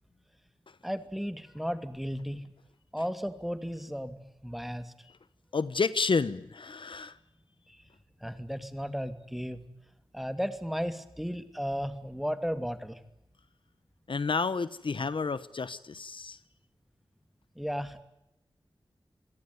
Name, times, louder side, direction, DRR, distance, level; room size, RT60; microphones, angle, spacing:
voice 1, 0.8-2.5 2.9-4.9 7.7-7.8 8.2-9.7 10.1-13.0 17.6-18.0, equal, ahead, 10 dB, 2.6 m, -35 dB
voice 2, 5.5-7.2 14.1-16.4, left 4 dB, 65° left, 16 dB, 1.0 m, -30 dB
26.5 x 18.0 x 9.5 m, 0.89 s
wide cardioid pair, 65°, 9 cm